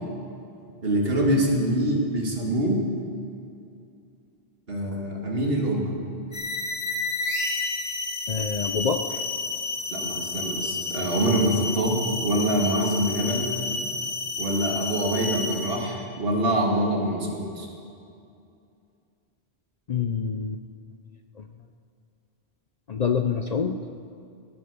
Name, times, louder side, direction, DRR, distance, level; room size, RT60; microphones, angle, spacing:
voice 1, 0.8-2.9 4.7-5.9 9.9-13.6 14.4-17.7, right 1 dB, 65° right, -1 dB, 2.3 m, -25 dB
sound 1, 6.3-15.9, left 3 dB, 70° left, 2.5 m, -30 dB
voice 2, 8.3-9.2 19.9-20.6 21.4-21.5 22.9-23.8, left 6 dB, 50° left, 7 dB, 0.6 m, -26 dB
17.0 x 10.5 x 6.8 m, 2.5 s
omnidirectional pair, 1.0 m